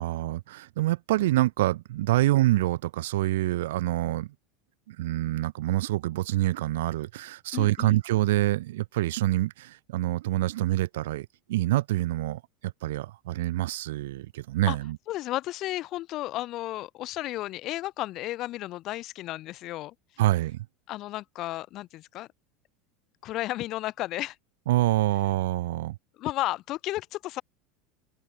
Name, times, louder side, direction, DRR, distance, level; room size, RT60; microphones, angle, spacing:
voice 1, 0.0-4.3 4.9-15.0 20.2-20.7 24.7-26.0, right 16 dB, 90° right, 1.9 m, -26 dB
voice 2, 7.5-8.0 14.7-14.8 15.1-19.9 20.9-22.3 23.2-24.4 26.2-27.4, left 16 dB, 40° left, 2.8 m, -33 dB
supercardioid pair, 150°, 0 cm